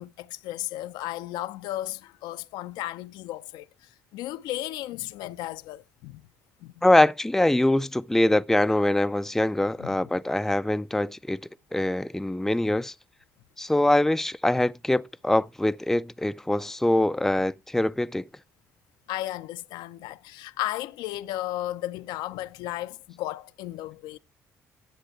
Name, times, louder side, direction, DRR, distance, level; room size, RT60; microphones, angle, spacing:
voice 1, 0.0-6.2 6.6-6.7 9.8-9.9 19.1-24.2, left 15 dB, 70° left, 0.5 m, -34 dB
voice 2, 6.8-12.9 13.6-18.3, left 1 dB, 5° left, 0.4 m, -23 dB
10.0 x 7.7 x 4.4 m
hypercardioid pair, 50°, 8 cm